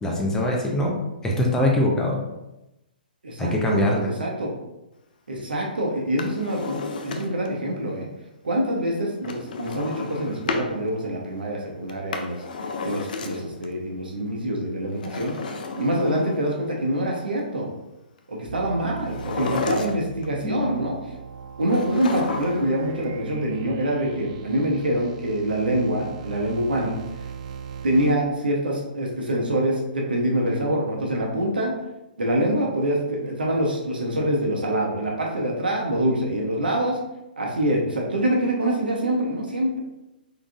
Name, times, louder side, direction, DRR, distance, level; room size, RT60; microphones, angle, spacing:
voice 1, 0.0-2.2 3.4-4.1 20.4-20.7, left 1 dB, 10° left, -1 dB, 0.6 m, -23 dB
voice 2, 3.2-4.5 5.3-8.1 8.4-12.4 12.8-15.3 15.8-17.7 18.3-20.9 21.6-26.9 27.8-31.7 32.2-37.0 37.4-39.8, right 1 dB, 70° right, -1 dB, 0.9 m, -25 dB
Drawer open or close, 6.0-7.6 9.2-10.7 11.9-13.7 14.9-16.6 19.0-20.3 21.7-22.8 23.1-23.2, left 4 dB, 55° left, 0.4 m, -32 dB
sound 1, 18.5-28.2, right 7 dB, 45° right, 0.3 m, -39 dB
3.8 x 3.6 x 2.4 m, 0.94 s
figure-of-eight pair, 120°, 5 cm